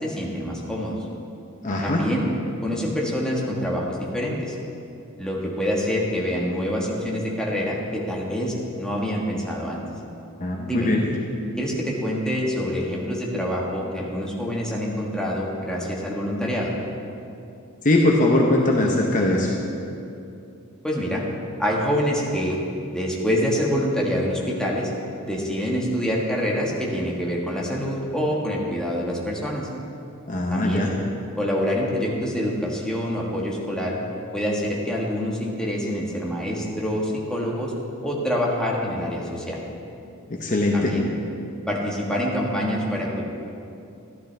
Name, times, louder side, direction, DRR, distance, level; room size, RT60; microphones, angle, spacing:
voice 1, 0.0-1.0 1.8-2.2 2.6-4.6 5.2-9.8 10.7-10.9 11.6-16.7 20.8-21.2 21.6-22.6 22.9-24.9 25.2-29.7 30.5-30.9 31.4-34.0 34.3-37.7 38.0-39.6 40.7-41.0 41.7-43.2, equal, 5° left, -3 dB, 1.4 m, -26 dB
voice 2, 1.6-2.0 10.4-11.1 17.8-19.5 30.2-30.9 40.3-40.9, left 1 dB, 35° left, 0 dB, 0.8 m, -21 dB
13.0 x 12.0 x 3.4 m, 2.7 s
head